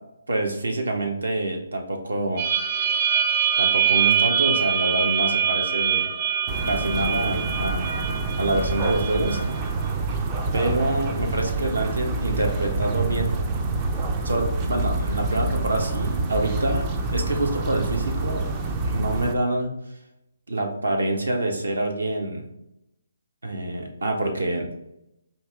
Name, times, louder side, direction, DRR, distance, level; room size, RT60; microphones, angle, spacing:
voice 1, 0.3-2.5 3.6-6.1 6.7-8.0 8.4-9.4 10.5-13.3 14.2-18.5 18.8-19.8 20.5-22.4 23.4-24.8, right 2 dB, 65° right, 2 dB, 0.9 m, -26 dB
sound 1, 2.4-9.9, right 8 dB, 40° right, 0.9 m, -24 dB
sound 2, 6.5-19.3, right 3 dB, 20° right, 0.4 m, -27 dB
4.6 x 2.8 x 3.5 m, 0.85 s
figure-of-eight pair, 140°, 0 cm